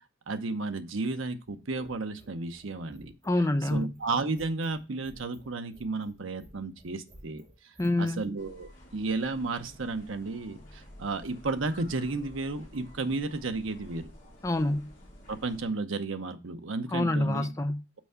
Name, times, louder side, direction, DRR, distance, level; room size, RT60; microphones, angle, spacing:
voice 1, 0.3-3.1 3.7-7.4 8.0-14.0 15.3-17.5, right 3 dB, 80° right, 0.8 m, -33 dB
sound 1, 1.4-8.3, equal, 25° right, 2.2 m, -55 dB
voice 2, 3.2-3.9 7.8-8.2 14.4-14.9 16.9-17.8, left 1 dB, 15° left, 0.4 m, -27 dB
sound 2, 8.4-15.7, left 1 dB, 40° left, 2.5 m, -51 dB
6.1 x 4.6 x 5.5 m
head